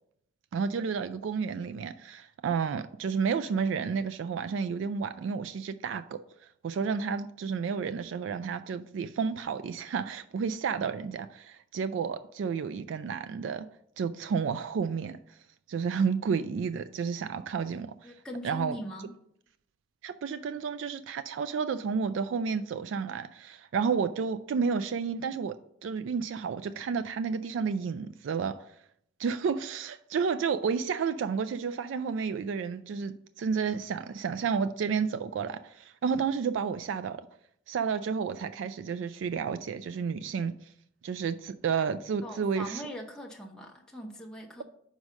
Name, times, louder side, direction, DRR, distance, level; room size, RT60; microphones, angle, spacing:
voice 1, 0.5-6.2 6.6-13.7 14.0-15.4 15.7-18.2 18.4-18.8 20.0-25.5 25.8-28.7 29.2-37.3 37.7-40.7 41.0-42.8, right 6 dB, 80° right, 0.3 m, -31 dB
voice 2, 18.0-19.1 42.2-44.6, equal, 5° left, 0.8 m, -41 dB
5.3 x 4.8 x 6.2 m
head